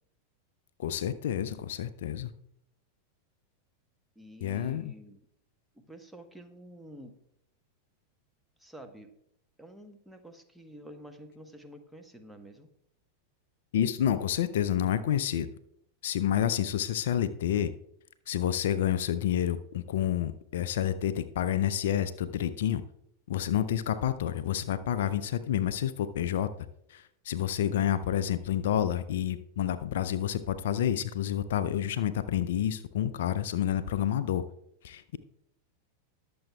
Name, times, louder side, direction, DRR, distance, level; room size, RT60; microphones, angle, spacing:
voice 1, 0.8-2.3 4.4-4.9 13.7-15.5 16.0-17.7 18.3-22.8 23.3-26.5 26.9-34.4 34.8-35.2, left 10 dB, 55° left, 13 dB, 0.5 m, -29 dB
voice 2, 4.1-5.2 5.7-7.1 8.6-9.1 9.6-12.7 23.8-24.1, equal, ahead, 5 dB, 1.1 m, -49 dB
20.5 x 6.9 x 2.3 m, 0.77 s
figure-of-eight pair, 90°, 0 cm